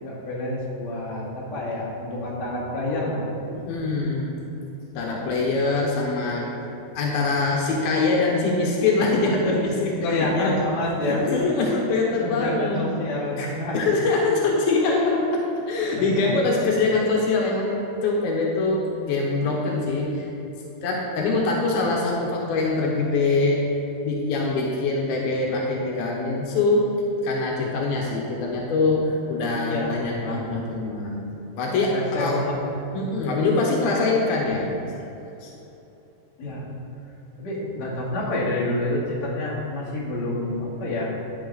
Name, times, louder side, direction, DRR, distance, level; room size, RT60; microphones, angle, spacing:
voice 1, 0.0-3.2 10.0-11.3 12.2-13.8 15.9-16.3 29.6-30.9 31.9-32.8 36.4-36.7 37.4-41.1, left 1 dB, 50° left, -8 dB, 3.4 m, -28 dB
voice 2, 3.5-4.4 4.9-6.5 6.9-10.6 11.0-12.9 13.4-13.5 13.7-20.3 20.8-23.6 24.0-26.9 27.2-32.4 32.9-34.8 35.4-35.5, left 3 dB, 85° left, -2 dB, 2.9 m, -23 dB
11.5 x 7.7 x 4.0 m, 3.0 s
omnidirectional pair, 4.2 m